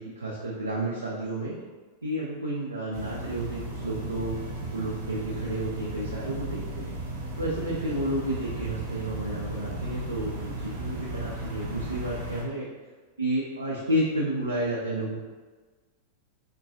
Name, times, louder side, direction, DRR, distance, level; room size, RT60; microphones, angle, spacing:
voice 1, 0.0-1.6 2.0-4.4 4.7-7.0 7.4-12.7 13.2-15.2, right 1 dB, 80° right, -4 dB, 0.4 m, -31 dB
sound 1, 2.9-12.4, right 2 dB, 55° right, 0.9 m, -35 dB
3.6 x 2.3 x 2.5 m, 1.4 s
figure-of-eight pair, 90°, 0 cm